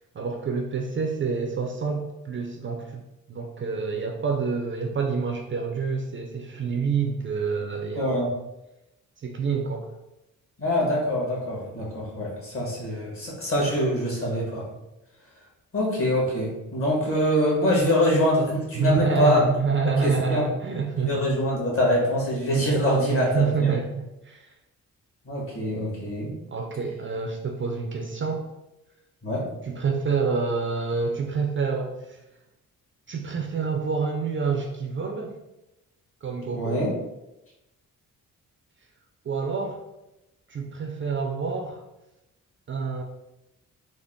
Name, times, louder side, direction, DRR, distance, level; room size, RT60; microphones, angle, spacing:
voice 1, 0.1-8.3 9.2-9.9 18.7-21.4 23.1-24.5 26.5-28.5 29.6-32.2 33.1-35.4 36.2-36.8 39.2-39.8 40.5-41.8 42.7-43.0, right 5 dB, 35° right, 2 dB, 0.4 m, -27 dB
voice 2, 8.0-8.3 10.6-14.7 15.7-19.4 20.0-20.5 21.0-23.7 25.2-26.3 29.2-29.5 36.5-37.0, equal, 40° left, -3 dB, 1.4 m, -24 dB
3.6 x 2.0 x 3.6 m, 0.94 s
cardioid pair, 105°, 33 cm